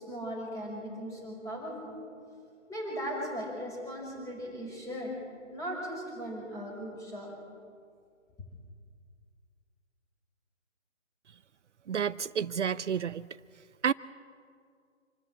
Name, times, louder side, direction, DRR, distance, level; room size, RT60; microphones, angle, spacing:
voice 1, 0.0-2.0 2.7-5.2 5.5-7.3, equal, 10° left, -1 dB, 5.4 m, -38 dB
voice 2, 11.9-13.3 13.8-13.9, right 7 dB, 70° right, 16 dB, 0.6 m, -30 dB
26.5 x 13.5 x 8.6 m, 2.2 s
figure-of-eight pair, 145°, 38 cm